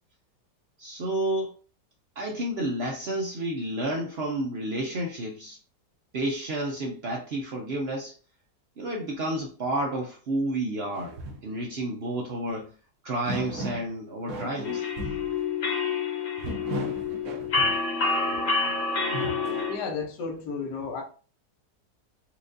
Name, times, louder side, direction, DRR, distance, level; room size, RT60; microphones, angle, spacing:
voice 1, 0.8-1.6 2.2-5.6 6.1-8.1 8.8-11.2 11.4-12.7 13.0-14.9, right 1 dB, 85° right, 0.5 m, -30 dB
sound 1, 10.9-11.5 12.5-12.6 13.2-13.9 14.3-15.3 16.4-17.8 18.9-19.7, right 1 dB, 55° right, 1.0 m, -36 dB
sound 2, 14.6-19.8, left 4 dB, 50° left, 1.2 m, -28 dB
voice 2, 19.6-21.0, left 5 dB, 75° left, 1.4 m, -33 dB
4.3 x 2.4 x 2.6 m
omnidirectional pair, 1.8 m